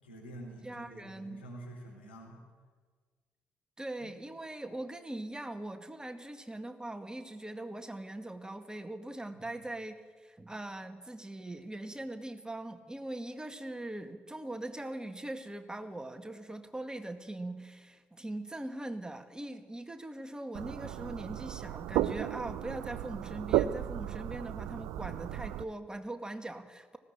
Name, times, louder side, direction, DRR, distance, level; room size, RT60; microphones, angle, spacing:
voice 1, 0.0-2.4 4.0-4.1 9.3-9.6, right 1 dB, 90° left, -2 dB, 4.2 m, -48 dB
voice 2, 0.6-1.4 3.8-27.0, right 1 dB, 15° right, 8 dB, 2.0 m, -41 dB
sound 1, 20.5-25.6, right 13 dB, 70° right, 0.5 m, -34 dB
19.5 x 16.0 x 8.9 m, 1.5 s
figure-of-eight pair, 40°, 5 cm